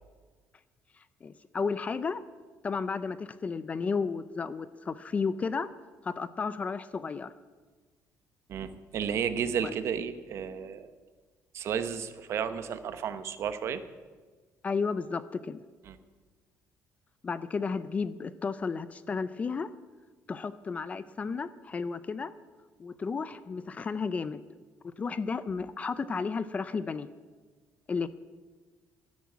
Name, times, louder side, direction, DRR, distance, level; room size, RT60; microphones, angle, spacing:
voice 1, 1.2-2.2 2.6-5.7 6.0-7.3 14.6-15.6 17.2-19.7 20.3-22.3 22.8-24.4 25.0-27.1 27.9-28.1, left 5 dB, 25° left, 15 dB, 0.5 m, -33 dB
voice 2, 8.5-10.9 11.5-13.8 15.9-16.0, right 7 dB, 50° right, 11 dB, 1.0 m, -32 dB
12.5 x 10.5 x 8.3 m, 1.4 s
cardioid pair, 165°, 6 cm